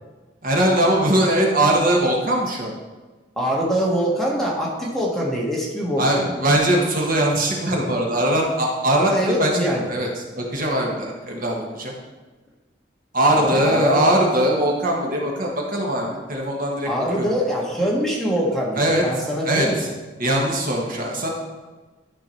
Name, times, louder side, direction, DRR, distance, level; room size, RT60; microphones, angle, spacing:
voice 1, 0.4-2.7 6.0-10.1 10.4-11.9 13.1-16.9 17.2-17.3 18.7-19.0 19.4-19.9 20.2-21.3, right 1 dB, 50° right, -1 dB, 1.5 m, -21 dB
voice 2, 3.4-6.3 8.9-9.9 13.3-14.0 16.8-19.8, equal, ahead, -4 dB, 1.5 m, -24 dB
11.5 x 4.7 x 4.4 m, 1.3 s
head